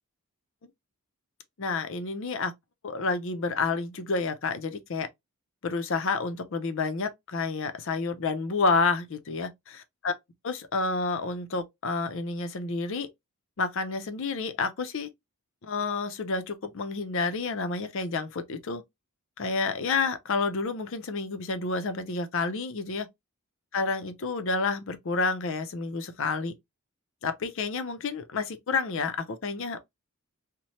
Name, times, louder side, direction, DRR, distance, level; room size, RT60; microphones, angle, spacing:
voice 1, 1.6-2.5 2.8-5.1 5.6-9.5 10.0-10.1 10.4-13.1 13.6-15.1 15.6-18.8 19.4-23.1 23.7-26.5 27.2-29.8, left 4 dB, 60° left, 0.5 m, -29 dB
3.0 x 2.1 x 2.8 m
head